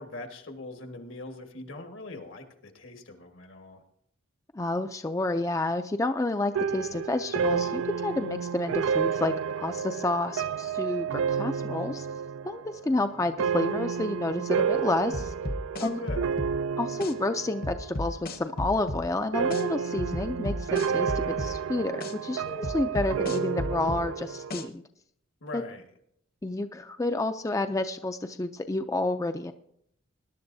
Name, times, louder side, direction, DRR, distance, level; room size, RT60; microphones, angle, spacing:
voice 1, 0.0-3.8 15.8-16.2 25.4-25.9, left 3 dB, 80° left, 4 dB, 1.7 m, -41 dB
voice 2, 4.5-12.1 12.4-15.3 15.8-16.0 16.8-24.8 25.5-25.6 26.4-29.5, left 2 dB, 15° left, 8 dB, 0.4 m, -30 dB
sound 1, 6.5-18.0 18.3-18.9 19.3-24.7, right 6 dB, 85° right, 0.3 m, -30 dB
sound 2, 15.1-16.5 17.0-17.1 17.6-19.0 19.5-19.6 20.0-21.5 22.0-22.1 22.6-24.0 24.5-24.6, left 1 dB, 50° left, 0.9 m, -33 dB
20.0 x 11.0 x 2.7 m, 0.72 s
head